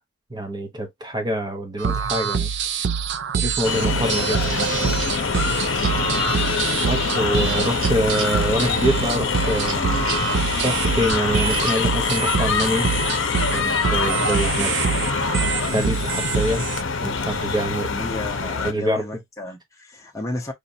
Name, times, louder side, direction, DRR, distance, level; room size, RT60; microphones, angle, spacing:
voice 1, 0.3-2.5 3.4-4.8 5.5-5.6 6.8-9.8 10.6-12.9 13.5-14.7 15.0-15.1 15.7-16.7 17.0-18.0 18.6-19.1, right 1 dB, 20° right, 1.0 m, -25 dB
sound 1, 1.8-16.8, right 6 dB, 55° right, 0.4 m, -25 dB
sound 2, 3.6-18.7, left 5 dB, 60° left, 0.7 m, -24 dB
sound 3, 3.9-11.8, right 4 dB, 70° right, 1.4 m, -39 dB
voice 2, 18.0-20.5, left 1 dB, 15° left, 0.7 m, -32 dB
5.0 x 2.6 x 2.7 m
head